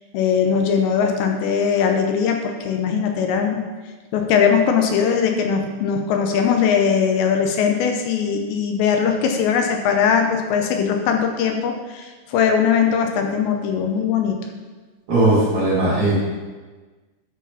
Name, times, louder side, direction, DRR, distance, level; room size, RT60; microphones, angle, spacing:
voice 1, 0.1-3.6 4.1-14.4, left 7 dB, 85° left, 4 dB, 3.0 m, -20 dB
voice 2, 15.1-16.2, right 2 dB, 40° right, -7 dB, 4.3 m, -18 dB
11.0 x 5.0 x 5.7 m, 1.3 s
omnidirectional pair, 5.2 m